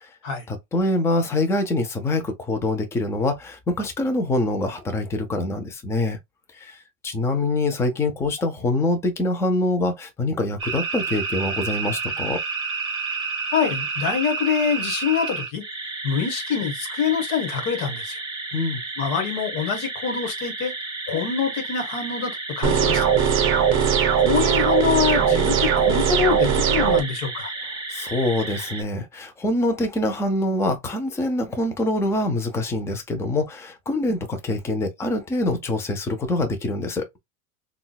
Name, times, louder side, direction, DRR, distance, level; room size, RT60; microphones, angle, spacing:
voice 1, 0.5-6.2 6.5-12.4 18.5-18.8 27.9-37.1, left 2 dB, 5° left, 0.5 m, -25 dB
sound 1, 10.6-28.8, right 4 dB, 10° right, 1.3 m, -31 dB
voice 2, 13.5-15.6 16.0-18.2 19.0-20.7 21.1-23.1 24.2-27.5, left 7 dB, 50° left, 1.3 m, -25 dB
sound 2, 22.6-27.0, right 7 dB, 30° right, 0.8 m, -20 dB
3.7 x 2.3 x 2.2 m
hypercardioid pair, 120°, 42 cm